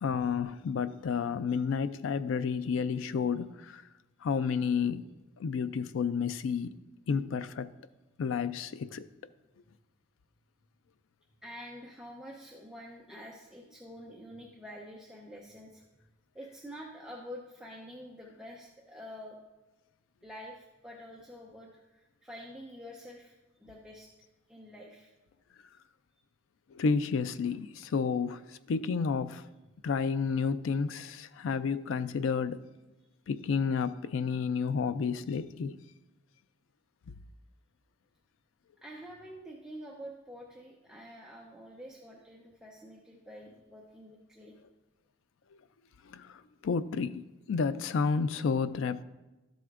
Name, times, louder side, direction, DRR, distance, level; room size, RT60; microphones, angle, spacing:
voice 1, 0.0-3.8 4.2-5.0 5.4-6.7 7.1-7.7 8.2-9.1 26.7-28.4 28.7-29.4 29.8-32.6 33.3-35.8 46.1-47.2 47.5-49.0, left 5 dB, 70° left, 13 dB, 0.4 m, -31 dB
voice 2, 11.4-15.8 16.3-19.4 20.2-23.3 23.6-24.1 24.5-25.1 38.8-44.6, equal, 5° right, -3 dB, 0.6 m, -47 dB
12.5 x 7.7 x 2.5 m, 1.1 s
head